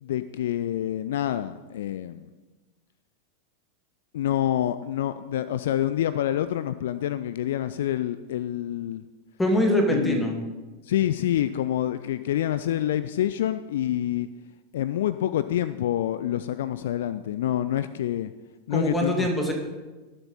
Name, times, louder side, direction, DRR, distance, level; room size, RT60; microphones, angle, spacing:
voice 1, 0.0-2.3 4.1-9.0 9.9-10.3 10.8-14.3 14.7-18.3 18.7-19.3, left 12 dB, 60° left, 14 dB, 0.4 m, -27 dB
voice 2, 9.4-10.3 18.7-19.5, equal, 10° left, 2 dB, 2.5 m, -23 dB
19.0 x 7.3 x 4.2 m, 1.2 s
figure-of-eight pair, 90°, 0 cm